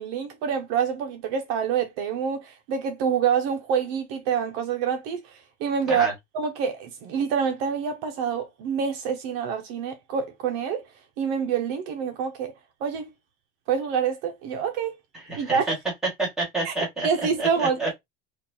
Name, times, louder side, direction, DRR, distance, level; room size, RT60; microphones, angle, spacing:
voice 1, 0.0-6.1 6.3-10.8 11.2-12.5 12.8-13.1 13.7-15.0 15.4-15.7 16.6-16.7 17.0-17.8, right 7 dB, 60° right, 0.6 m, -26 dB
voice 2, 15.3-15.7 16.2-17.1 17.4-17.9, right 2 dB, ahead, 1.7 m, -28 dB
4.3 x 2.3 x 2.7 m
cardioid pair, 175°, 33 cm